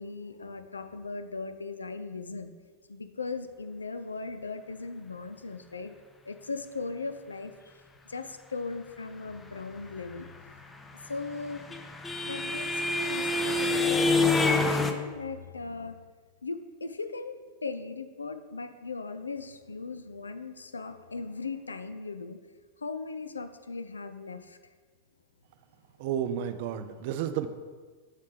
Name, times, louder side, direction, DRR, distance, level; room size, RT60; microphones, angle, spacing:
voice 1, 0.0-2.5 2.9-5.9 6.3-10.3 11.0-11.8 12.3-16.0 16.4-17.3 17.6-22.4 22.8-24.6, left 4 dB, 75° left, 10 dB, 0.4 m, -38 dB
sound 1, 11.1-14.9, left 3 dB, 15° left, 0.5 m, -26 dB
voice 2, 26.0-27.5, right 9 dB, 50° right, 10 dB, 0.4 m, -31 dB
7.5 x 3.2 x 4.8 m, 1.5 s
figure-of-eight pair, 90°, 0 cm